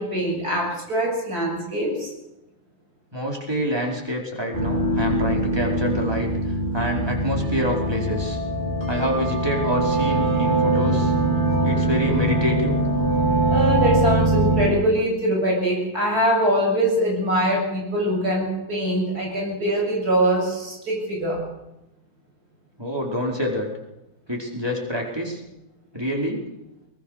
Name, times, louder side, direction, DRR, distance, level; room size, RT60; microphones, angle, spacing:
voice 1, 0.0-2.1 13.5-21.4, right 1 dB, 90° right, -1 dB, 8.1 m, -23 dB
voice 2, 3.1-6.3 6.7-8.4 8.9-11.1 11.6-12.8 22.8-23.7 24.3-25.4 25.9-26.4, equal, 15° right, -1 dB, 4.9 m, -26 dB
sound 1, 4.5-14.7, right 2 dB, 40° right, 7.0 m, -22 dB
23.0 x 21.0 x 6.8 m, 0.91 s
omnidirectional pair, 1.6 m